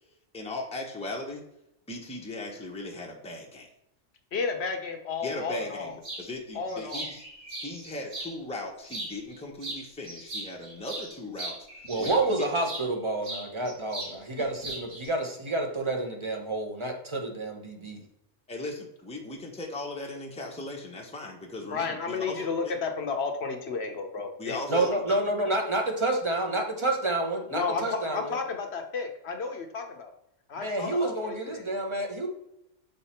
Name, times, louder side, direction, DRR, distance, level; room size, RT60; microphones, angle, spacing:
voice 1, 0.3-1.4 1.9-3.7 5.2-7.2 7.6-12.1 12.4-12.5 14.4-14.5 18.5-22.7 24.4-25.2, left 2 dB, 5° left, 0 dB, 0.9 m, -38 dB
voice 2, 4.3-6.0 6.5-7.1 21.7-24.8 27.5-30.1 30.5-31.8, left 5 dB, 60° left, 4 dB, 1.1 m, -32 dB
sound 1, 6.0-6.3 6.7-8.3 8.8-9.4 9.6-12.9 13.2-14.2 14.4-15.1, right 2 dB, 80° right, 2.1 m, -38 dB
voice 3, 11.9-18.0 24.7-28.3 30.6-32.3, right 2 dB, 25° right, 2 dB, 1.0 m, -29 dB
6.8 x 4.1 x 4.3 m, 0.81 s
omnidirectional pair, 1.3 m